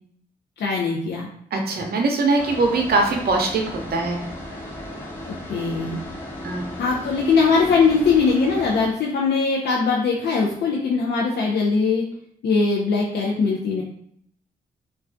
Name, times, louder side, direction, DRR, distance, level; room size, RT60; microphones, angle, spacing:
voice 1, 0.6-1.3 5.3-6.0 6.8-12.0 12.4-13.8, left 4 dB, 65° left, -2 dB, 0.5 m, -21 dB
voice 2, 1.5-3.6 3.9-4.2 6.4-6.7, right 3 dB, 55° right, 2 dB, 0.6 m, -21 dB
sound 1, 2.4-8.9, left 1 dB, 10° left, 0.8 m, -35 dB
2.2 x 2.2 x 2.5 m, 0.67 s
supercardioid pair, 45°, 19 cm